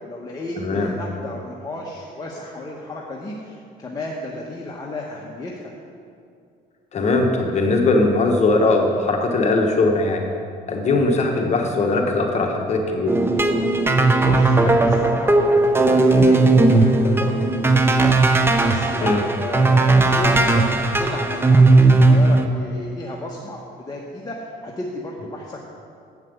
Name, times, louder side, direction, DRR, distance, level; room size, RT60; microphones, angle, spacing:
voice 1, 0.0-5.7 14.2-18.2 18.6-25.6, left 2 dB, 20° left, -3 dB, 1.0 m, -33 dB
voice 2, 0.6-0.9 6.9-10.2 10.7-13.2 19.0-19.2, left 2 dB, 40° left, 2 dB, 1.1 m, -20 dB
sound 1, 13.1-22.5, right 2 dB, 15° right, 0.6 m, -16 dB
7.9 x 5.8 x 7.9 m, 2.3 s
cardioid pair, 110°, 17 cm